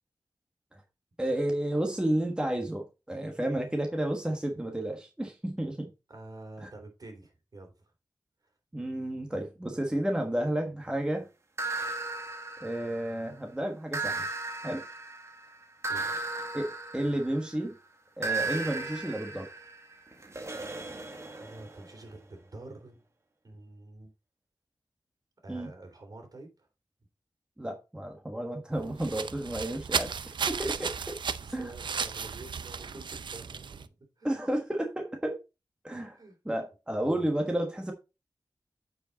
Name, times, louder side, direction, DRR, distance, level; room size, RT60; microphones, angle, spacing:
voice 1, 1.2-5.9 6.6-6.7 8.7-11.3 12.6-14.2 14.6-14.8 16.5-17.7 18.2-19.5 25.5-25.7 27.6-30.1 30.5-31.2 31.5-31.7 34.2-35.4 35.8-36.2 36.4-37.9, right 1 dB, 10° right, 1.4 m, -31 dB
voice 2, 6.1-7.7 15.9-16.2 21.3-23.0 23.4-24.1 25.4-26.5 31.4-34.5 36.1-36.4 36.9-37.3, right 2 dB, 50° right, 3.2 m, -48 dB
sound 1, 11.6-13.3 13.9-17.6 18.2-21.9, right 3 dB, 35° right, 1.4 m, -36 dB
sound 2, 28.7-33.9, right 6 dB, 85° right, 0.5 m, -35 dB
8.8 x 4.9 x 4.0 m
wide cardioid pair, 85°, 8 cm